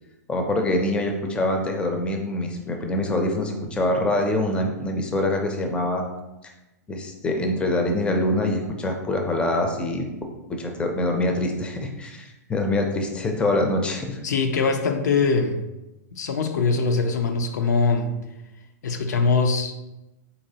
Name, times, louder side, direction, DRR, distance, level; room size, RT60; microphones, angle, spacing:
voice 1, 0.3-6.0 6.4-6.5 6.9-10.1 10.5-14.2, left 1 dB, 10° left, 3 dB, 0.4 m, -25 dB
voice 2, 14.2-15.6 16.1-18.1 18.8-19.7, left 4 dB, 85° left, 5 dB, 0.5 m, -22 dB
4.0 x 3.0 x 2.7 m, 0.98 s
hypercardioid pair, 130°, 9 cm